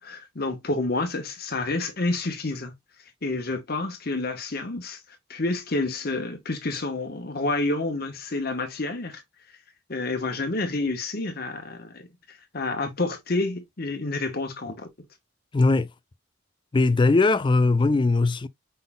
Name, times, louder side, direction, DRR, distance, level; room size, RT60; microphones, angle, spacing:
voice 1, 0.0-2.7 3.2-5.0 5.3-9.2 9.9-14.9, left 2 dB, 55° left, 1.1 m, -29 dB
voice 2, 15.5-15.9 16.7-18.5, left 3 dB, 25° left, 0.4 m, -20 dB
5.4 x 3.9 x 2.2 m
head